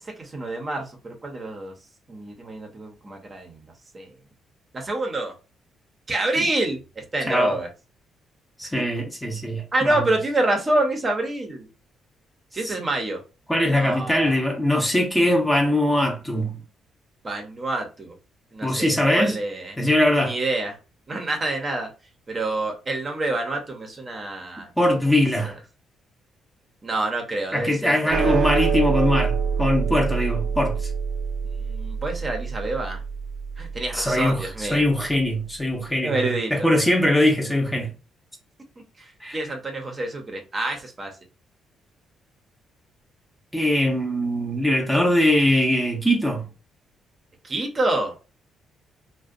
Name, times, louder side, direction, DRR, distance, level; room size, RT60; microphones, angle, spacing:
voice 1, 0.0-1.7 2.1-4.1 4.7-5.3 6.1-7.7 9.7-11.7 12.5-13.2 13.7-14.4 17.2-18.2 18.5-19.8 20.2-20.8 21.1-21.9 22.3-24.7 24.9-25.1 26.8-28.5 31.6-33.0 33.6-34.8 36.0-36.5 39.0-41.1 47.4-48.2, right 2 dB, 30° right, 0.7 m, -27 dB
voice 2, 8.6-10.0 12.6-12.7 13.5-16.6 18.6-19.4 19.8-20.3 24.8-25.6 27.5-30.9 33.9-37.9 39.2-39.4 43.5-46.5, left 1 dB, 5° left, 0.6 m, -21 dB
sound 1, 28.1-34.6, right 6 dB, 75° right, 0.4 m, -26 dB
2.5 x 2.1 x 2.5 m
cardioid pair, 90°, 0 cm